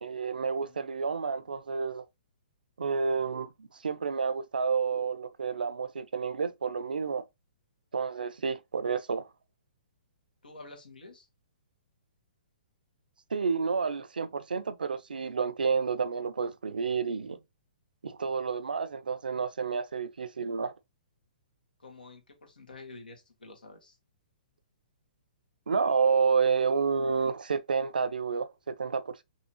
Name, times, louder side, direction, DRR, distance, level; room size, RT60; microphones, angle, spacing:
voice 1, 0.0-2.0 2.8-7.2 7.9-9.2 13.3-17.4 18.0-20.7 25.7-29.2, right 5 dB, 80° right, 0.6 m, -30 dB
voice 2, 10.4-11.1 21.8-22.2 22.6-23.1 23.4-23.8, left 3 dB, 85° left, 1.8 m, -47 dB
5.5 x 3.0 x 2.9 m
hypercardioid pair, 125°, 5 cm